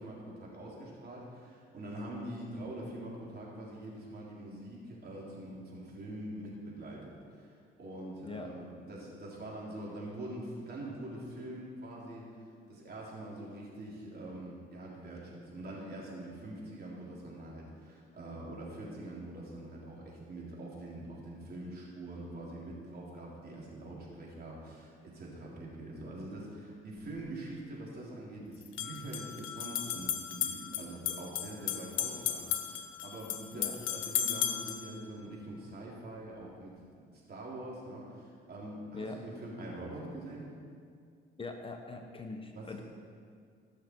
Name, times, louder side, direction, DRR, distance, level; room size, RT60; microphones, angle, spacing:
voice 1, 0.0-40.5 42.5-42.8, right 1 dB, 50° right, -4 dB, 3.5 m, -44 dB
sound 1, 27.0-27.1 28.6-34.9, left 10 dB, 90° left, 0.8 m, -35 dB
voice 2, 41.4-42.8, left 3 dB, 25° left, 3 dB, 1.2 m, -42 dB
19.5 x 6.5 x 4.6 m, 2.2 s
cardioid pair, 90°, 20 cm